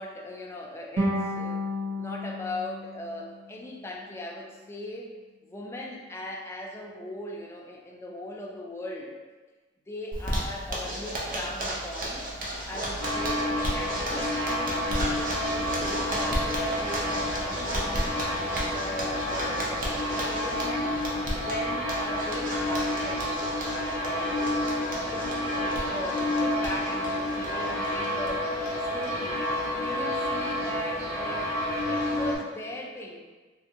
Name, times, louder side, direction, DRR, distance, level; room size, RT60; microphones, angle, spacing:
voice 1, 0.0-1.6 2.0-5.1 5.5-9.2 9.9-12.3 12.7-18.2 18.5-20.9 21.4-23.3 23.6-28.5 28.8-29.4 29.8-31.5 31.9-33.2, left 1 dB, 15° left, -1 dB, 0.4 m, -39 dB
sound 1, 1.0-4.1, left 1 dB, 80° right, 0.9 m, -32 dB
Zipper (clothing), 10.1-28.3 28.6-28.7 29.0-29.1 29.4-29.9, right 1 dB, 45° right, 0.7 m, -34 dB
sound 2, 13.0-32.4, left 1 dB, 15° right, 1.0 m, -29 dB
3.4 x 2.7 x 2.8 m, 1.3 s
head